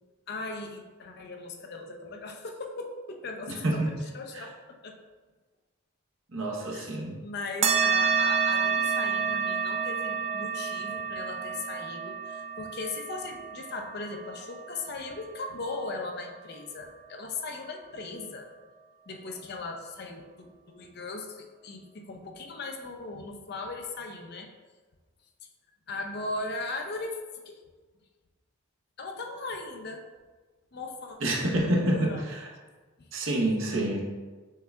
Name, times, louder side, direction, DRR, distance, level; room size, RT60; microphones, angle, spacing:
voice 1, 0.3-4.5 4.8-4.9 6.7-6.9 7.2-18.5 19.1-24.5 25.9-27.6 29.0-30.0 30.7-31.2 31.6-32.2 33.0-33.1, left 3 dB, 50° left, 3 dB, 0.5 m, -38 dB
voice 2, 3.6-3.9 4.3-4.4 6.3-7.1 31.2-32.5 33.1-34.0, right 1 dB, 65° right, -2 dB, 0.9 m, -27 dB
sound 1, 7.6-16.5, right 6 dB, 30° right, 0.3 m, -29 dB
6.4 x 2.3 x 3.3 m, 1.3 s
head